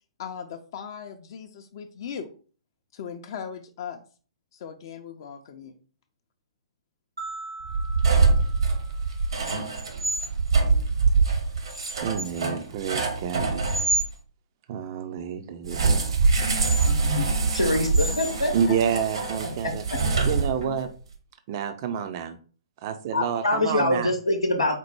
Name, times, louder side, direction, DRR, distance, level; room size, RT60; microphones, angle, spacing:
voice 1, 0.2-2.3 2.9-4.0 4.5-5.8, left 7 dB, 45° left, 0.4 m, -38 dB
sound 1, 7.2-9.5, right 3 dB, 80° right, 2.0 m, -41 dB
sound 2, 7.6-14.1 15.7-20.9, right 4 dB, 60° right, 0.9 m, -24 dB
voice 2, 12.0-13.7 14.7-16.5 18.5-20.9 21.5-22.4 22.8-24.1, right 8 dB, 40° right, 0.4 m, -29 dB
voice 3, 16.9-17.3 17.5-18.5 23.1-24.8, left 2 dB, 80° left, 0.8 m, -24 dB
4.3 x 2.1 x 4.5 m
figure-of-eight pair, 120°, 3 cm